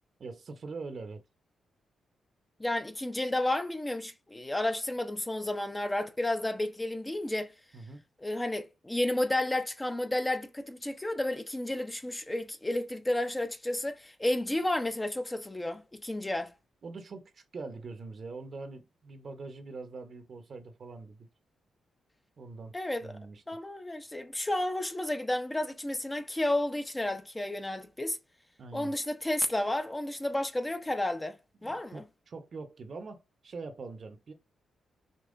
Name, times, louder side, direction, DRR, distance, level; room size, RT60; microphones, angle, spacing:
voice 1, 0.2-1.2 7.7-8.0 16.8-21.3 22.4-22.7 23.0-23.4 28.6-28.9 31.6-34.3, right 3 dB, 55° right, 0.9 m, -43 dB
voice 2, 2.6-7.5 8.2-16.5 22.7-23.2 23.5-28.2 28.7-32.0, left 1 dB, 15° left, 0.7 m, -32 dB
5.3 x 2.9 x 2.6 m
supercardioid pair, 60°, 0 cm